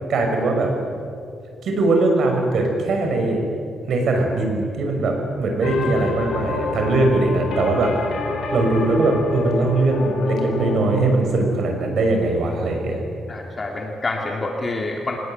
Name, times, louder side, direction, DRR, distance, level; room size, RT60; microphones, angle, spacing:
voice 1, 0.1-0.7 1.6-3.4 3.9-7.9 8.5-13.0, right 2 dB, 60° right, 3 dB, 5.9 m, -21 dB
sound 1, 5.6-11.1, left 2 dB, 75° left, 3.8 m, -27 dB
voice 2, 13.3-15.2, left 2 dB, 25° left, 1 dB, 2.1 m, -27 dB
24.5 x 19.5 x 9.3 m, 2.4 s
wide cardioid pair, 155°, 0 cm